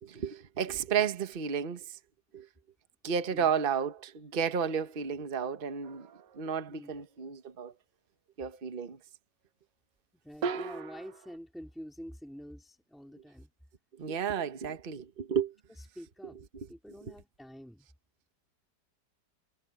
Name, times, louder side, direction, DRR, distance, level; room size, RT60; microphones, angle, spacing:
voice 1, 0.0-2.0 2.3-2.5 3.0-6.1 6.4-7.7 8.4-9.0 14.0-15.5 16.5-16.7, right 7 dB, 35° right, 1.2 m, -32 dB
sound 1, 5.8-6.4 10.4-11.4, right 5 dB, 85° right, 1.7 m, -37 dB
voice 2, 6.7-7.0 10.2-13.5 15.9-16.4 16.7-17.9, equal, ahead, 3.1 m, -47 dB
omnidirectional pair, 1.8 m